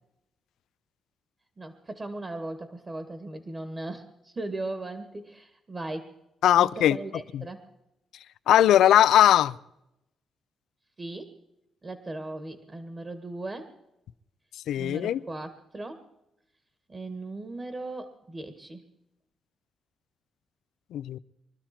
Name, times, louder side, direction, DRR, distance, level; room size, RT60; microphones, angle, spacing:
voice 1, 1.6-6.1 6.6-7.6 11.0-11.4 11.8-13.7 14.8-16.0 16.9-18.8, right 2 dB, 30° right, 8 dB, 1.8 m, -38 dB
voice 2, 6.4-7.0 7.3-7.4 8.5-9.6 14.7-15.2 20.9-21.2, left 11 dB, 85° left, 17 dB, 0.5 m, -19 dB
24.0 x 12.5 x 4.4 m, 0.85 s
cardioid pair, 85°, 0 cm